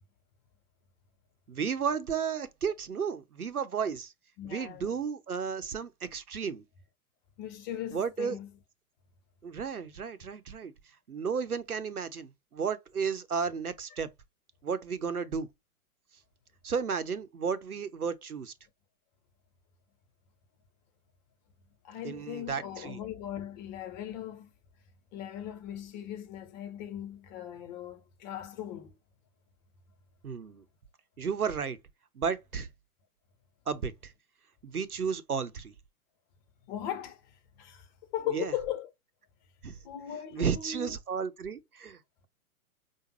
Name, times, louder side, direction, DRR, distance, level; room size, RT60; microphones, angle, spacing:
voice 1, 1.5-4.1 4.4-6.6 7.9-8.4 9.4-10.7 11.1-14.1 14.6-15.5 16.6-18.5 22.0-23.0 30.2-30.6 31.2-31.8 32.1-32.7 33.7-34.1 34.6-35.7 38.3-38.5 39.6-39.8 40.3-42.3, right 6 dB, 80° right, 0.8 m, -33 dB
voice 2, 4.4-5.0 7.4-8.5 21.8-24.5 25.1-28.9 36.7-37.2 37.6-38.9 39.8-40.9, left 10 dB, 30° left, 0.9 m, -38 dB
4.9 x 2.2 x 3.0 m
figure-of-eight pair, 105°, 44 cm